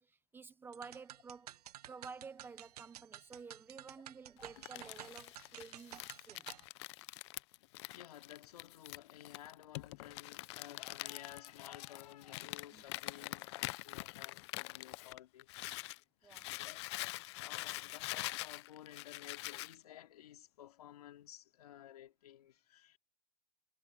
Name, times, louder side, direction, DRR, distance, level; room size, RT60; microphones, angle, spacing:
voice 1, 0.0-1.5 1.9-6.5 12.7-12.8 16.2-16.5, right 5 dB, 10° right, 0.7 m, -52 dB
sound 1, 0.7-6.6, right 12 dB, 70° right, 1.0 m, -52 dB
Crumpling crinkling, 4.4-16.0 16.3-19.7, left 21 dB, 45° left, 0.6 m, -45 dB
voice 2, 7.9-15.7 16.2-23.0, left 12 dB, 70° left, 3.0 m, -55 dB
hypercardioid pair, 140°, 20 cm